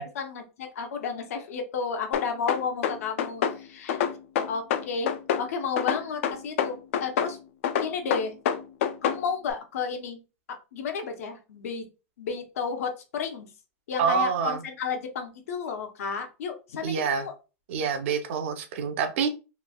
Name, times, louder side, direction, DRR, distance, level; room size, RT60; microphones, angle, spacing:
voice 1, 0.0-4.0 4.5-5.1 5.4-7.4 7.8-8.3 9.0-10.2 10.5-11.8 12.2-13.5 13.9-17.3, left 5 dB, 85° left, 5 dB, 0.7 m, -32 dB
sound 1, 2.1-3.6 3.9-5.5 5.8-7.3 7.6-9.2, left 8 dB, 60° left, 0.4 m, -26 dB
voice 2, 14.0-14.6 16.8-17.2 17.7-19.3, right 6 dB, 55° right, 7 dB, 0.6 m, -26 dB
3.1 x 2.4 x 2.2 m, 0.31 s
supercardioid pair, 170°, 8 cm